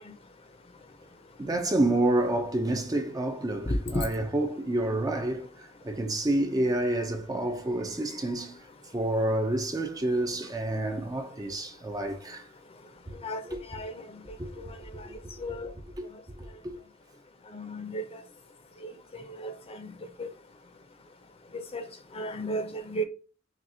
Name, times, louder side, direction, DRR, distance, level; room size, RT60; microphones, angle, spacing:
voice 1, 1.4-8.6 8.9-12.4 13.1-13.2 14.4-14.5 15.0-15.1 15.5-15.6 16.0-16.1 16.3-16.7, right 1 dB, 20° right, 0.5 m, -29 dB
voice 2, 17.5-18.2 18.8-18.9 19.4-19.9 20.2-20.3 21.5-21.8 22.1-23.0, equal, 30° left, 0.7 m, -33 dB
6.0 x 2.4 x 2.7 m
head